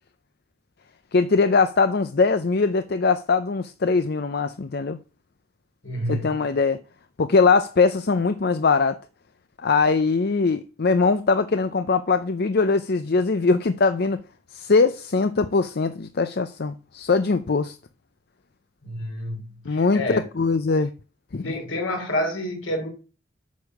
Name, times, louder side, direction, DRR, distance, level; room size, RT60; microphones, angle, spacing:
voice 1, 1.1-5.0 6.1-6.8 7.2-9.0 9.6-14.2 14.5-17.8 19.7-20.9 21.3-21.5, left 4 dB, 50° left, 0.5 m, -21 dB
voice 2, 5.8-6.4 18.8-20.2 21.4-22.9, left 1 dB, 70° left, 3.2 m, -29 dB
8.3 x 6.5 x 6.1 m
head